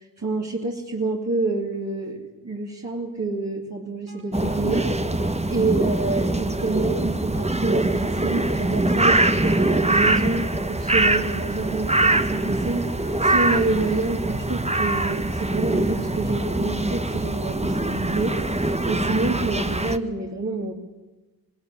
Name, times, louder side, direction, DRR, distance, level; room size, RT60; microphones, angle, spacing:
voice 1, 0.0-4.9 5.5-20.7, right 3 dB, 45° right, -2 dB, 2.8 m, -28 dB
sound 1, 4.1-17.0, right 2 dB, 85° right, 5.5 m, -43 dB
sound 2, 4.3-20.0, right 2 dB, 20° right, 1.1 m, -23 dB
20.0 x 19.0 x 8.5 m, 1.2 s
wide cardioid pair, 60°, 36 cm